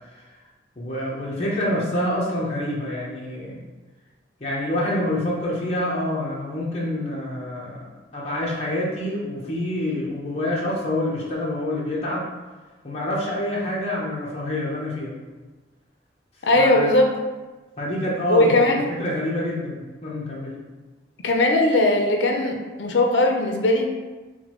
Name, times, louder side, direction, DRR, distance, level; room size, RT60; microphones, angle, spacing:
voice 1, 0.8-3.6 4.4-7.9 8.1-12.2 12.8-15.1 16.6-17.0 17.8-18.7 19.0-20.5, left 1 dB, 35° left, -5 dB, 0.7 m, -27 dB
voice 2, 16.4-17.1 18.3-18.9 21.2-23.9, left 2 dB, 75° left, 3 dB, 0.6 m, -19 dB
5.9 x 2.2 x 3.0 m, 1.2 s
head